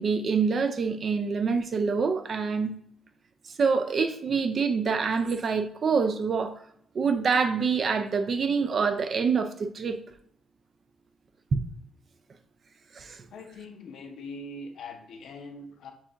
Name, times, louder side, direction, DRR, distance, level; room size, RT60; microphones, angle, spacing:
voice 1, 0.0-2.7 3.5-6.6 6.9-10.0 12.9-13.2, right 5 dB, 50° right, 8 dB, 0.4 m, -26 dB
voice 2, 13.3-15.9, left 2 dB, 70° left, 4 dB, 0.8 m, -42 dB
7.3 x 2.8 x 2.5 m, 0.66 s
cardioid pair, 90°, 0 cm